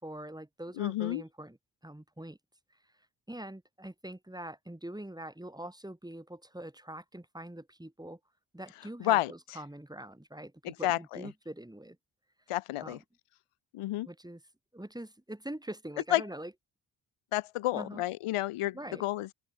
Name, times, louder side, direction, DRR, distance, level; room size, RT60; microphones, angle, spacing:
voice 1, 0.0-1.6 1.8-2.4 3.3-8.2 8.5-12.0 12.8-13.0 14.0-14.4 14.7-16.5 17.7-18.0 18.6-19.0, right 1 dB, 10° right, 3.1 m, -43 dB
voice 2, 0.8-1.2 9.0-9.3 10.6-11.3 12.5-13.0 13.7-14.1 16.1-16.2 17.3-19.3, left 16 dB, 85° left, 0.9 m, -30 dB
open air
cardioid pair, 55°, 50 cm